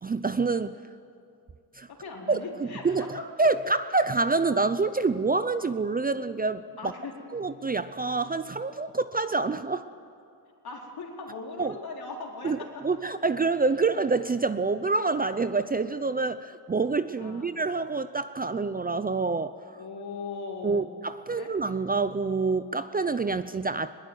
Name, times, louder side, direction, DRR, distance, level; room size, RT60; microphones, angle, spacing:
voice 1, 0.0-0.8 1.8-1.9 2.3-6.6 7.3-9.9 11.6-11.8 12.4-19.5 20.6-23.9, right 3 dB, 20° right, 12 dB, 0.6 m, -27 dB
voice 2, 1.9-3.3 6.8-7.1 10.6-12.8 17.2-17.5 19.7-20.9 21.3-21.5, left 4 dB, 60° left, 0 dB, 4.4 m, -39 dB
20.5 x 20.0 x 9.6 m, 2.5 s
cardioid pair, 95°, 42 cm